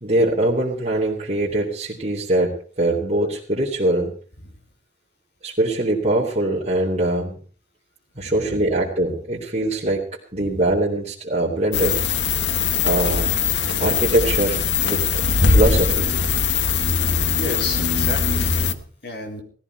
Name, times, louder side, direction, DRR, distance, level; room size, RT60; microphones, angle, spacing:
voice 1, 0.0-4.1 5.4-7.4 8.2-10.1 10.3-12.0 12.8-13.3 13.8-16.1, right 1 dB, 40° right, -5 dB, 2.9 m, -22 dB
voice 2, 8.2-8.8 10.4-10.6 13.6-14.1 16.3-16.6 17.4-19.4, left 1 dB, 65° left, 3 dB, 4.0 m, -33 dB
sound 1, 11.7-18.7, left 5 dB, 90° left, 1.1 m, -21 dB
17.5 x 14.5 x 4.7 m, 0.43 s
head